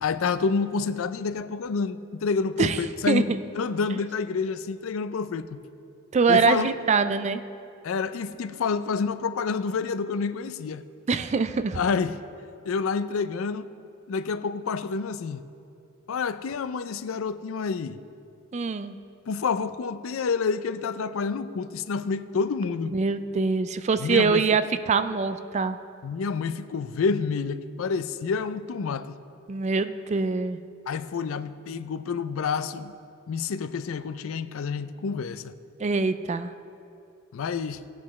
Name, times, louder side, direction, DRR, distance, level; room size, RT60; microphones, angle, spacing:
voice 1, 0.0-3.3 3.6-5.6 6.3-6.7 7.8-10.8 11.7-12.2 12.7-13.7 14.1-15.4 16.1-18.0 19.3-23.0 24.0-24.4 26.0-29.2 30.9-32.9 33.3-35.5 37.3-37.8, left 5 dB, 75° left, 0.4 m, -28 dB
voice 2, 3.1-3.4 6.1-7.4 11.1-11.8 18.5-19.0 22.9-25.8 29.5-30.6 35.8-36.5, right 4 dB, 35° right, 0.3 m, -24 dB
16.5 x 8.5 x 3.2 m
head